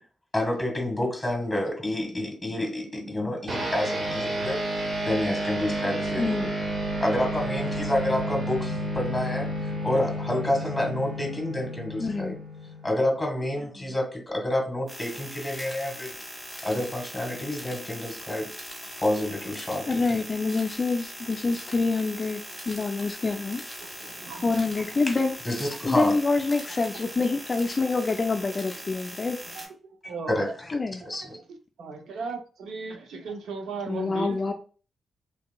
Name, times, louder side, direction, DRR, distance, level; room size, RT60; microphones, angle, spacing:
voice 1, 0.3-4.6 5.0-6.5 7.0-9.5 9.8-12.4 12.8-16.2 16.6-18.5 19.0-20.2 25.1-25.2 25.4-26.2 30.3-30.7 31.0-31.2, left 1 dB, 10° left, 1.6 m, -28 dB
voice 2, 3.0-3.7 23.8-24.5 28.5-28.6 29.4-29.7 30.1-30.5 31.0-31.4 31.8-34.5, right 4 dB, 80° right, 0.5 m, -37 dB
sound 1, 3.5-13.2, right 1 dB, 45° right, 0.8 m, -31 dB
voice 3, 6.2-6.5 12.0-12.4 19.9-23.6 24.4-25.3 25.8-29.4 30.7-31.0 33.9-34.5, left 3 dB, 40° left, 0.4 m, -26 dB
sound 2, 14.9-29.7, equal, 15° right, 1.6 m, -41 dB
3.2 x 2.8 x 2.2 m
cardioid pair, 65°, 0 cm